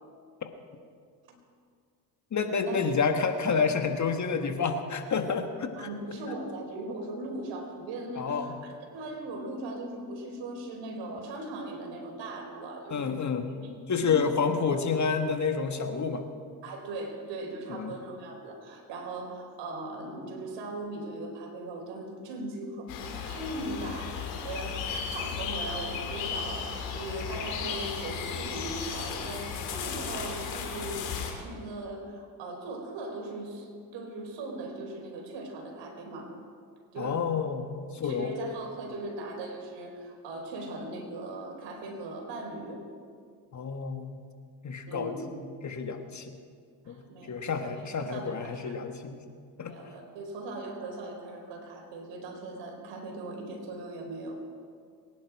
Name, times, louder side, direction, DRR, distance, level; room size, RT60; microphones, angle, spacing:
voice 1, 2.3-5.9 8.1-8.6 12.9-13.5 13.9-16.2 17.7-17.9 24.9-25.0 37.0-38.3 43.5-44.2 44.6-46.4 46.9-47.0 47.3-49.2 49.6-49.7, left 5 dB, 40° left, 6 dB, 1.7 m, -29 dB
voice 2, 5.8-13.1 13.6-13.7 14.0-14.3 14.7-14.8 16.6-36.3 36.9-37.2 38.0-42.8 44.9-45.3 46.8-48.8 49.6-54.4, right 2 dB, 70° right, 1 dB, 4.3 m, -39 dB
sound 1, 22.9-31.3, left 6 dB, 80° left, 2.8 m, -35 dB
24.0 x 10.5 x 4.8 m, 2.1 s
supercardioid pair, 70°, 45 cm